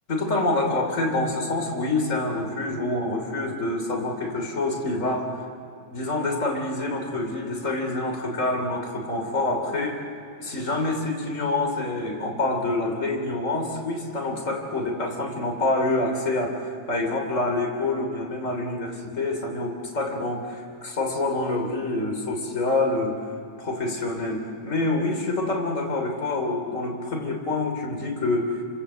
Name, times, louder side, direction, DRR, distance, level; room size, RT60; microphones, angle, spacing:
voice 1, 0.1-5.3 5.9-10.1 10.4-23.2 23.6-28.5, left 2 dB, 25° left, 2 dB, 3.1 m, -26 dB
28.5 x 25.5 x 7.8 m, 2.4 s
omnidirectional pair, 3.9 m